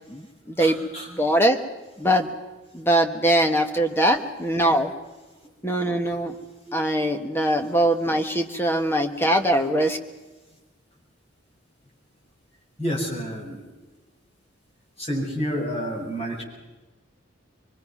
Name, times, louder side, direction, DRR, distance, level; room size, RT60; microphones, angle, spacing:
voice 1, 0.0-0.8 1.1-1.6 2.0-2.3 2.7-4.9 5.6-6.4 6.7-10.0, right 1 dB, 10° left, 4 dB, 1.4 m, -22 dB
voice 2, 0.6-1.1 3.7-3.8 4.1-4.3 6.6-6.9 7.6-7.8 12.8-13.7 15.0-16.4, equal, 30° left, -3 dB, 6.8 m, -30 dB
24.5 x 23.0 x 6.1 m, 1.1 s
head